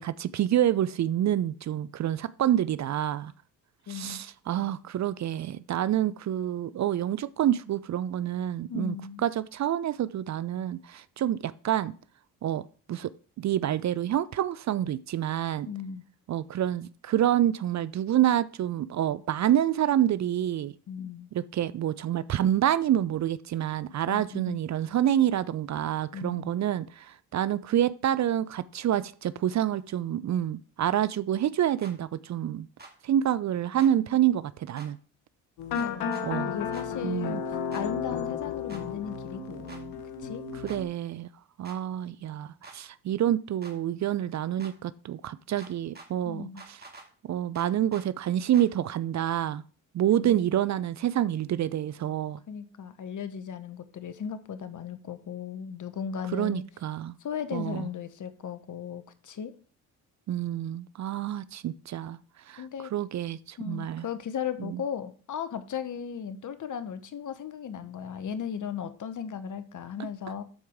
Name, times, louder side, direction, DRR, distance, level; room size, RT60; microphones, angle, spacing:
voice 1, 0.0-3.3 3.9-9.0 9.2-11.9 12.4-12.6 12.9-13.1 13.4-15.7 16.3-20.7 21.3-32.7 33.0-35.0 36.2-36.5 37.0-37.4 40.6-41.3 41.6-46.8 47.2-49.6 49.9-52.4 56.3-57.2 57.5-57.9 60.3-62.2 62.5-62.7 62.9-64.1 64.6-64.8, right 11 dB, 45° right, 0.5 m, -27 dB
voice 2, 3.9-4.2 8.7-9.2 15.7-16.0 20.9-21.3 24.1-24.6 26.1-26.6 35.8-37.4 37.7-40.4 46.2-46.6 50.2-50.4 52.5-56.6 57.2-59.5 62.6-62.9 63.6-70.4, left 7 dB, 50° left, 1.1 m, -36 dB
sound 1, 31.8-31.9 32.8-32.9 33.8-33.9 34.8-34.9 35.7-36.3 36.7-36.9 37.7-37.8 38.7-38.8 39.7-39.8 40.7-40.8 41.6-41.8 42.6-42.8 43.6-43.8 44.6-44.7 45.6-46.1 46.6-47.1 47.5-48.1 48.5-48.7, right 3 dB, 25° right, 2.1 m, -47 dB
sound 2, 35.6-40.8, left 7 dB, 80° left, 1.2 m, -33 dB
12.5 x 4.6 x 3.6 m
supercardioid pair, 55°, 39 cm